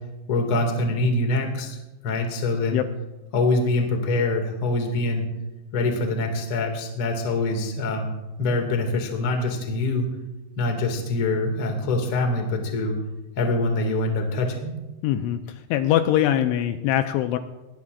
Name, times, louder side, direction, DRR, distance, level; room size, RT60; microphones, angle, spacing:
voice 1, 0.3-1.8 2.0-2.8 3.3-5.3 5.7-8.1 8.4-10.1 10.6-13.0 13.4-14.7, left 2 dB, 45° left, 3 dB, 1.9 m, -24 dB
voice 2, 15.0-17.4, left 11 dB, 85° left, 7 dB, 2.9 m, -22 dB
21.0 x 18.0 x 2.5 m, 1.1 s
omnidirectional pair, 5.7 m